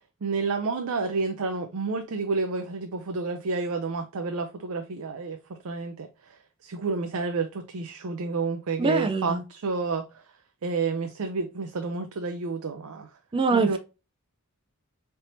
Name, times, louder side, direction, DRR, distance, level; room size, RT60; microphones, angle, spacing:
voice 1, 0.2-6.1 6.6-10.1 10.6-13.1 13.5-13.8, right 4 dB, 80° right, 0.5 m, -30 dB
voice 2, 8.8-9.4 13.3-13.8, right 3 dB, 25° right, 0.4 m, -24 dB
4.3 x 3.4 x 2.6 m
head